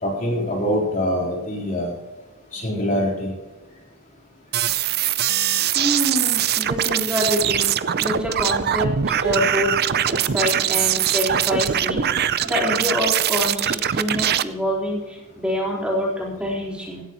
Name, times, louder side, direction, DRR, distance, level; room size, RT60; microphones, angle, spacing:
voice 1, 0.0-1.9 2.5-3.3, equal, 40° left, -3 dB, 3.9 m, -24 dB
sound 1, 4.5-14.4, right 10 dB, 45° right, 0.6 m, -22 dB
voice 2, 5.7-7.7 8.0-9.7 10.1-12.0 12.4-17.0, equal, 5° right, -4 dB, 4.3 m, -26 dB
17.0 x 15.0 x 3.1 m, 1.2 s
head